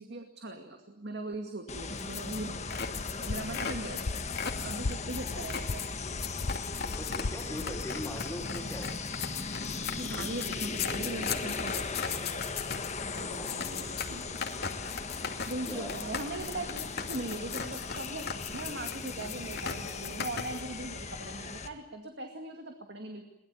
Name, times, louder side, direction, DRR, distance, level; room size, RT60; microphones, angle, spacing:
voice 1, 0.0-4.1 4.6-5.8 10.0-12.0 13.1-14.3 15.5-18.3 18.5-23.3, right 2 dB, 50° right, 4 dB, 2.3 m, -40 dB
sound 1, 1.7-21.7, left 4 dB, 35° left, 1.6 m, -38 dB
sound 2, 2.0-20.6, left 6 dB, 50° left, 2.5 m, -37 dB
sound 3, 2.8-7.8, left 3 dB, 85° left, 0.8 m, -39 dB
voice 2, 5.2-5.5 6.8-9.0 13.2-13.7 15.6-16.0, left 1 dB, 10° left, 0 dB, 4.0 m, -42 dB
23.0 x 20.0 x 8.7 m, 0.86 s
head